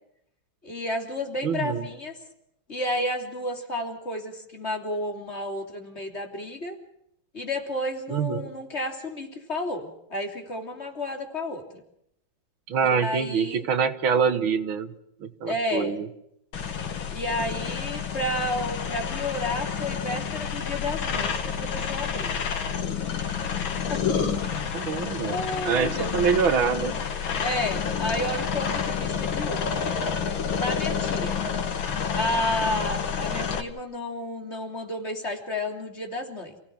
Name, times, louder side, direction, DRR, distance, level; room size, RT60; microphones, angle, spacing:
voice 1, 0.6-2.2 2.7-6.8 7.3-11.8 12.8-13.7 15.5-15.9 17.1-22.5 23.9-24.5 24.8-26.1 27.3-29.8 30.5-31.4 32.1-36.5, left 1 dB, 35° left, 3 dB, 3.5 m, -31 dB
voice 2, 1.4-1.8 8.1-8.5 12.7-14.9 15.2-16.1 24.1-24.4 24.7-25.4 25.6-26.9, right 6 dB, 90° right, 11 dB, 2.3 m, -25 dB
sound 1, 16.5-33.6, left 7 dB, 80° left, 2.5 m, -29 dB
29.5 x 17.0 x 6.0 m, 0.76 s
omnidirectional pair, 2.1 m